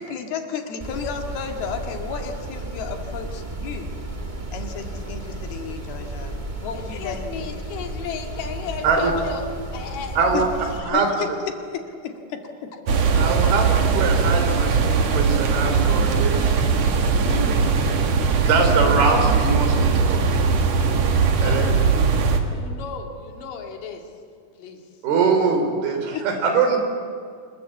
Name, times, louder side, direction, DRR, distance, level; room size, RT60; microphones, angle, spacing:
voice 1, 0.0-3.9 4.5-7.5 9.2-9.4 10.3-11.3 11.5-13.3 26.1-26.3, left 6 dB, 85° left, 4 dB, 3.9 m, -33 dB
sound 1, 0.8-10.8, right 1 dB, 30° right, 0.8 m, -33 dB
voice 2, 6.7-9.4 9.7-10.2 21.3-21.8 22.5-24.0 24.6-24.8, left 6 dB, 65° left, 2 dB, 3.7 m, -34 dB
voice 3, 8.8-9.2 10.2-10.5 10.9-11.1 13.1-16.6 17.2-17.6 18.4-20.2 21.4-21.7 25.0-26.8, right 4 dB, 80° right, 5 dB, 5.2 m, -23 dB
sound 2, 12.9-22.4, right 5 dB, 50° right, 2.5 m, -20 dB
25.5 x 21.0 x 8.3 m, 2.2 s
omnidirectional pair, 4.3 m